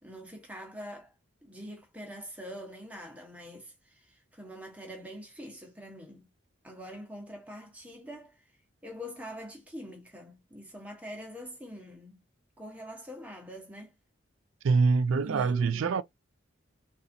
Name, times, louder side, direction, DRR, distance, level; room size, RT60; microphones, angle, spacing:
voice 1, 0.0-1.1 1.4-6.3 6.6-8.4 8.8-12.2 12.6-13.9 15.2-16.0, equal, 5° right, 1.0 m, -44 dB
voice 2, 14.6-16.0, right 4 dB, 85° right, 0.4 m, -24 dB
3.9 x 2.6 x 2.6 m
head